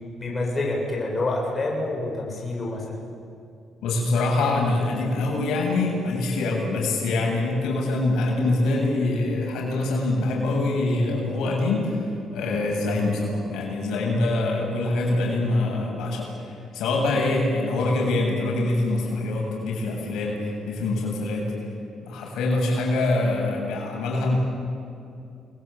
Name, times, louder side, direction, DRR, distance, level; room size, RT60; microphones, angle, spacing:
voice 1, 0.2-3.0, left 2 dB, 30° left, -1 dB, 7.3 m, -27 dB
voice 2, 3.8-21.5 22.0-24.4, left 2 dB, 85° left, -1 dB, 7.7 m, -24 dB
30.0 x 21.5 x 8.5 m, 2.6 s
cardioid pair, 90°, 0 cm